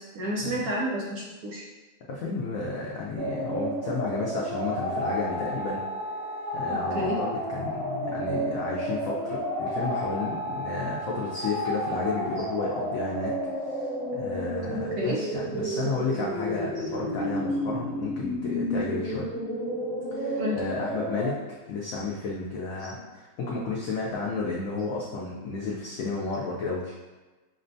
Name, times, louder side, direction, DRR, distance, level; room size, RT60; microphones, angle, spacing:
voice 1, 0.0-1.6 6.7-7.2 14.7-15.2 20.4-20.7 22.8-22.9, equal, 70° right, -3 dB, 0.9 m, -31 dB
voice 2, 2.1-5.8 6.5-13.3 13.7-19.3 20.1-21.4 21.7-26.9, left 3 dB, 85° left, -4 dB, 0.7 m, -32 dB
sound 1, 3.2-21.3, equal, 25° right, 1.1 m, -31 dB
5.9 x 2.1 x 2.6 m, 1.2 s
omnidirectional pair, 2.0 m